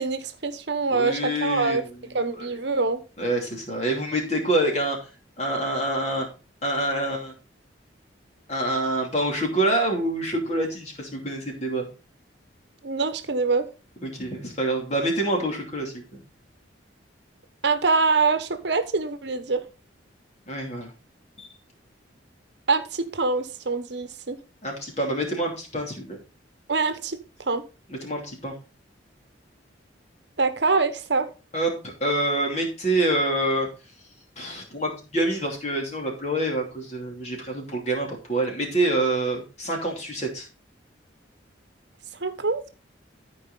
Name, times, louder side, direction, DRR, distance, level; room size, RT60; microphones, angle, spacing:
voice 1, 0.0-1.8 2.1-3.0 12.8-13.7 17.6-19.6 22.7-24.4 26.7-27.2 27.5-27.6 30.4-31.3 42.2-42.7, right 4 dB, 65° right, 1.0 m, -24 dB
voice 2, 0.9-1.8 2.4-2.5 3.2-5.0 5.4-6.3 6.6-7.3 8.5-11.9 14.0-16.2 20.5-20.9 21.4-21.5 24.6-26.2 27.9-28.5 31.5-33.7 34.4-40.5, right 1 dB, 35° left, 2.7 m, -26 dB
13.5 x 4.8 x 3.9 m
head